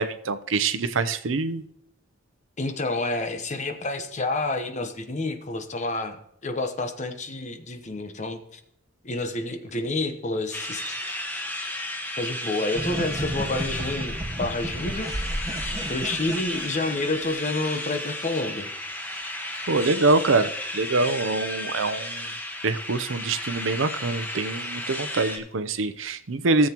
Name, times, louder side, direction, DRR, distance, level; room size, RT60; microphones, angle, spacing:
voice 1, 0.0-1.6 19.7-22.3 22.6-26.7, right 3 dB, 70° right, 12 dB, 0.7 m, -25 dB
voice 2, 2.6-8.6 9.0-11.0 12.2-15.1 15.9-18.7, left 2 dB, 35° left, 7 dB, 1.0 m, -29 dB
sound 1, 10.5-25.4, left 1 dB, 10° left, 1.3 m, -33 dB
sound 2, 12.7-17.5, right 1 dB, 20° right, 1.1 m, -33 dB
17.5 x 7.5 x 3.0 m, 0.76 s
head